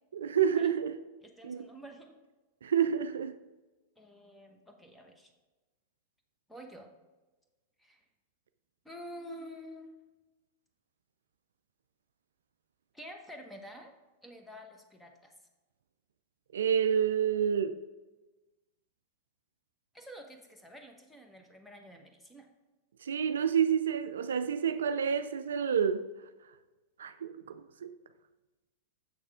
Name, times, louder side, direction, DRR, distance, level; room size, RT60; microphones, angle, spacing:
voice 1, 0.1-1.0 1.4-1.7 2.6-3.4 16.5-17.8 23.0-26.1 27.0-27.9, right 8 dB, 70° right, 0.3 m, -29 dB
voice 2, 1.2-2.2 4.0-5.3 6.5-6.9 7.8-8.0 8.8-9.9 12.9-13.9 14.2-15.3 19.9-22.5, equal, 5° left, 1.1 m, -49 dB
7.3 x 6.4 x 3.5 m
figure-of-eight pair, 90°, 0 cm